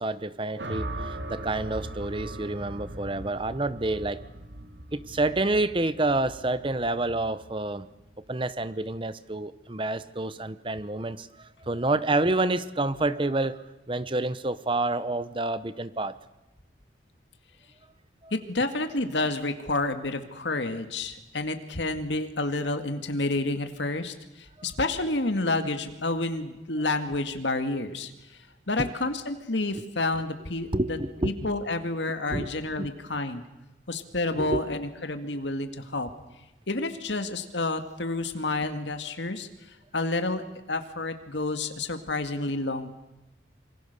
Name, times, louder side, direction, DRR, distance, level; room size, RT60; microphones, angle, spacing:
voice 1, 0.0-4.2 4.9-7.9 8.3-16.2 18.2-18.3 28.8-28.9 30.7-31.3 32.3-32.5 32.8-32.9 34.4-34.7, right 2 dB, 30° right, 14 dB, 0.9 m, -28 dB
sound 1, 0.6-8.8, right 1 dB, 75° right, 2.5 m, -40 dB
voice 2, 18.3-24.1 24.6-28.1 28.7-31.0 31.2-33.4 33.9-36.1 36.7-39.5 39.9-42.9, left 2 dB, 80° left, 8 dB, 2.0 m, -29 dB
27.0 x 24.5 x 6.8 m, 0.99 s
head